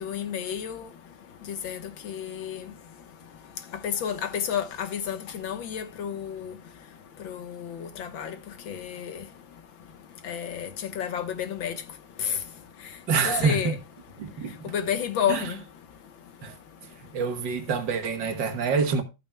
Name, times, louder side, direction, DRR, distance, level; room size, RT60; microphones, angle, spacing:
voice 1, 0.0-0.9 1.6-1.8 2.0-2.6 3.8-6.5 7.2-8.4 8.7-9.2 10.2-10.7 11.0-11.8 12.3-12.4 13.3-13.8 14.7-15.6, left 8 dB, 90° left, 2.0 m, -30 dB
voice 2, 13.1-13.8 14.2-14.6 15.3-15.4 16.4-16.6 17.1-19.0, right 5 dB, 70° right, 2.0 m, -26 dB
13.5 x 8.9 x 2.2 m
omnidirectional pair, 2.0 m